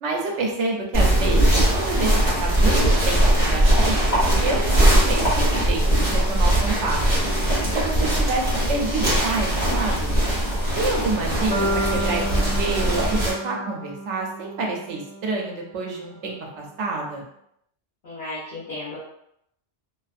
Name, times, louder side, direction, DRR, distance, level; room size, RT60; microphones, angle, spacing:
voice 1, 0.0-7.0 7.7-10.1 10.7-17.2, right 3 dB, 75° right, 0 dB, 0.9 m, -28 dB
sound 1, 0.9-13.3, right 1 dB, 25° left, 1.3 m, -20 dB
voice 2, 10.6-11.1 18.0-19.0, left 2 dB, 45° left, -10 dB, 1.0 m, -35 dB
sound 2, 11.5-15.6, right 1 dB, 80° left, 0.9 m, -31 dB
2.5 x 2.4 x 2.4 m, 0.76 s
omnidirectional pair, 1.2 m